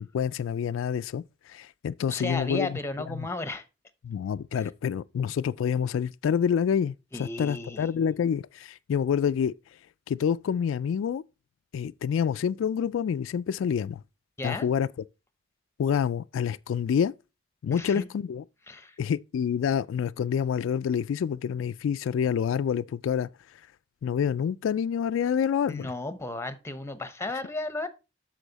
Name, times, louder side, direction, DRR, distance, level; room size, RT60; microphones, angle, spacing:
voice 1, 0.0-2.8 3.1-3.3 4.0-9.5 10.1-11.2 11.7-14.0 14.4-14.9 15.8-17.1 17.6-18.4 19.0-23.3 24.0-25.9, left 7 dB, 85° left, 0.3 m, -27 dB
voice 2, 2.1-3.6 7.1-7.9 14.4-14.7 17.7-18.1 18.7-18.9 25.7-27.9, left 2 dB, 15° left, 0.8 m, -34 dB
8.2 x 6.3 x 4.0 m
head